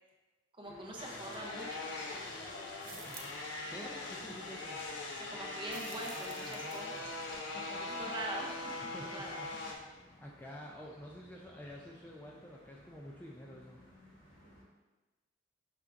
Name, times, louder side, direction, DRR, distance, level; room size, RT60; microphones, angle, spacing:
sound 1, 0.6-14.6, left 1 dB, 45° left, 1.5 m, -59 dB
voice 1, 0.6-2.9 5.2-7.1 7.8-9.4, right 2 dB, 25° right, -1 dB, 0.6 m, -44 dB
sound 2, 1.0-9.8, left 2 dB, 70° left, 0.6 m, -41 dB
sound 3, 2.8-3.5 5.7-7.0, right 5 dB, 90° right, 0.6 m, -51 dB
voice 2, 3.7-4.8 6.4-8.2 8.9-9.7 10.2-13.8, equal, 10° left, -2 dB, 0.3 m, -50 dB
5.7 x 3.5 x 2.5 m, 1.2 s
head